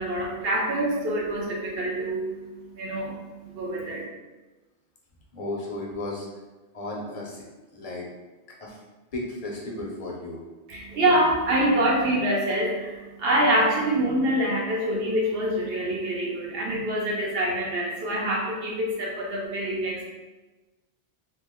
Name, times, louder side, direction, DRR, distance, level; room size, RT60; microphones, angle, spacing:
voice 1, 0.0-2.3 2.7-3.2 3.5-4.0 10.7-20.1, right 1 dB, 65° right, -2 dB, 0.8 m, -25 dB
voice 2, 5.3-6.3 6.7-7.4 7.7-8.1 8.6-8.8 9.1-10.4, left 2 dB, 40° left, -3 dB, 0.6 m, -34 dB
2.9 x 2.1 x 3.4 m, 1.1 s
omnidirectional pair, 1.2 m